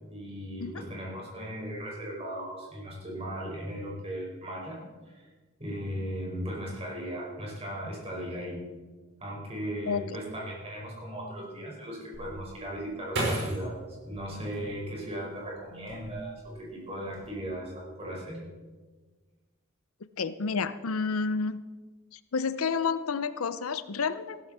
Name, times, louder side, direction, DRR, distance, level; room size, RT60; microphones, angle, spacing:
voice 1, 0.0-5.3 5.6-8.6 9.2-18.4, equal, 30° right, -3 dB, 5.0 m, -37 dB
voice 2, 9.9-10.2 20.2-21.6 22.1-24.4, left 5 dB, 85° left, 14 dB, 0.6 m, -30 dB
sound 1, 12.1-15.2 15.7-16.5 16.8-17.3, right 1 dB, 60° right, 4.9 m, -34 dB
15.5 x 13.0 x 4.3 m, 1.3 s
head